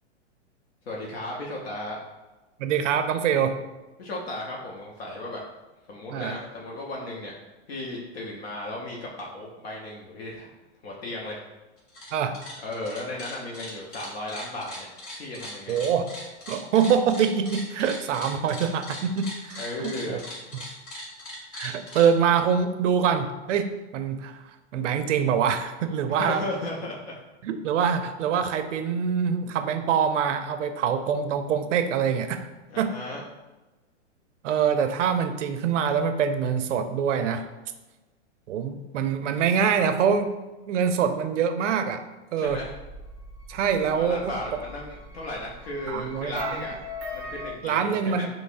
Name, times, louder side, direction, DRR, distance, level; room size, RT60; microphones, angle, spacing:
voice 1, 0.9-2.0 4.0-5.4 5.9-7.4 7.7-10.5 10.8-11.4 12.6-14.9 15.2-15.8 19.6-20.2 26.1-27.2 32.7-33.2 42.4-42.7 43.9-46.7 47.1-48.2, left 1 dB, 60° left, -2 dB, 0.7 m, -35 dB
voice 2, 2.6-3.6 6.1-6.4 12.1-12.4 15.7-16.1 16.5-20.2 21.5-24.4 24.7-26.4 27.4-32.4 32.8-33.0 34.4-37.5 38.5-40.3 40.7-42.0 42.3-42.6 43.5-44.3 45.9-46.6 47.6-48.3, right 7 dB, 90° right, 8 dB, 0.5 m, -25 dB
sound 1, 11.8-12.1 12.3-22.1, left 1 dB, 35° left, 1.2 m, -39 dB
sound 2, 42.4-47.5, left 2 dB, 5° right, 0.6 m, -40 dB
5.3 x 2.0 x 2.5 m, 1.1 s
hypercardioid pair, 165°, 35 cm